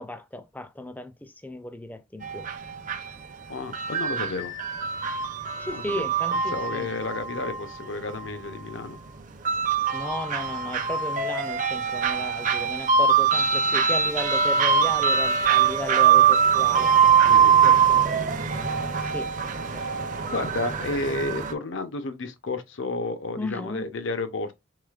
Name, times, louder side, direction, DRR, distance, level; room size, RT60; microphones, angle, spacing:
voice 1, 0.0-2.5 5.6-6.9 9.9-16.9 17.6-19.3 19.7-19.8 23.4-23.9, left 1 dB, 10° left, 0.4 m, -35 dB
sound 1, 2.2-21.5, right 7 dB, 40° right, 0.6 m, -23 dB
voice 2, 3.5-4.5 5.7-6.1 6.5-9.0 17.2-17.8 19.8-19.9 20.3-24.5, left 3 dB, 65° left, 0.7 m, -32 dB
4.9 x 4.0 x 2.4 m
head